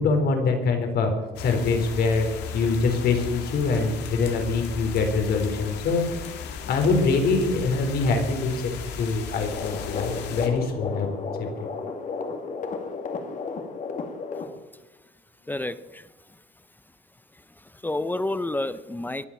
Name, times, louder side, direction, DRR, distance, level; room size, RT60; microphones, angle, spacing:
voice 1, 0.0-2.3 2.5-6.1 6.6-11.5, left 4 dB, 65° left, 4 dB, 4.1 m, -24 dB
sound 1, 1.4-10.5, left 5 dB, 90° left, 2.4 m, -36 dB
sound 2, 9.4-14.5, left 4 dB, 50° left, 2.5 m, -33 dB
voice 2, 15.5-16.1 17.8-19.3, left 2 dB, 10° left, 14 dB, 0.7 m, -29 dB
23.0 x 8.1 x 7.3 m, 1.2 s
cardioid pair, 110°, 17 cm